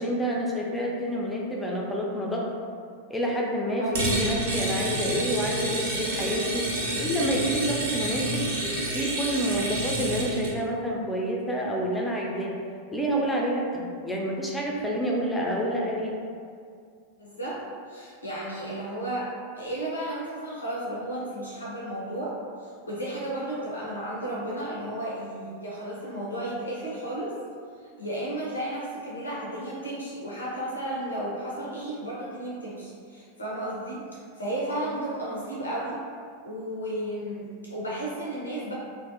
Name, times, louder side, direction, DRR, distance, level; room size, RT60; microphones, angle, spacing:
voice 1, 0.0-2.5 3.1-6.7 7.0-8.5 8.9-12.6 12.9-16.2, equal, 5° left, -3 dB, 0.4 m, -28 dB
sound 1, 3.9-10.5, right 1 dB, 60° right, 0.5 m, -29 dB
voice 2, 17.2-17.6 17.9-19.3 19.5-27.3 27.8-36.0 36.4-38.7, right 1 dB, 80° left, -6 dB, 0.4 m, -33 dB
2.5 x 2.0 x 2.6 m, 2.2 s
figure-of-eight pair, 90°, 0 cm